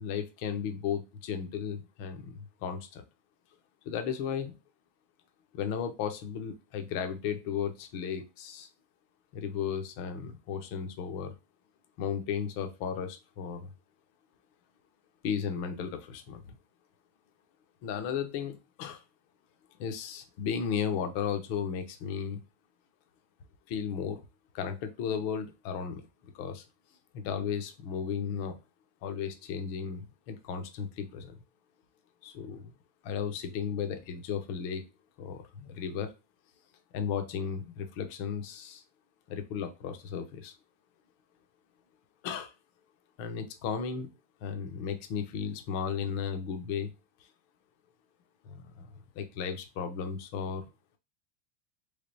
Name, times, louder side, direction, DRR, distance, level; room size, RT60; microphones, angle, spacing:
voice 1, 0.0-3.0 3.8-4.5 5.5-8.7 9.3-11.3 12.0-13.7 15.2-16.6 17.8-19.0 19.8-22.4 23.7-24.2 24.5-26.1 26.3-26.6 27.1-28.6 29.0-31.3 32.2-32.7 33.0-34.9 35.2-36.1 36.9-38.8 39.3-40.5 42.2-42.5 43.2-44.1 44.4-46.9 48.4-50.6, left 7 dB, 45° left, 7 dB, 0.6 m, -35 dB
3.7 x 3.3 x 2.6 m, 0.27 s
supercardioid pair, 170°, 0 cm